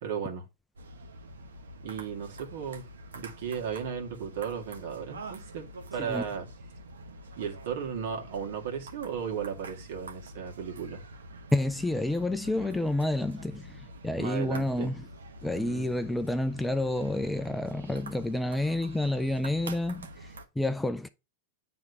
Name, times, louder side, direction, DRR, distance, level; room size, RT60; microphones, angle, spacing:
voice 1, 0.0-0.4 1.8-2.8 3.1-6.5 7.3-11.0 14.2-14.9 15.5-15.9, right 7 dB, 65° right, 1.9 m, -35 dB
sound 1, 0.8-20.5, right 1 dB, 80° right, 1.1 m, -46 dB
voice 2, 11.5-15.1 15.4-20.3 20.6-21.1, left 1 dB, 5° left, 0.4 m, -29 dB
9.2 x 3.5 x 3.3 m
hypercardioid pair, 100°, 0 cm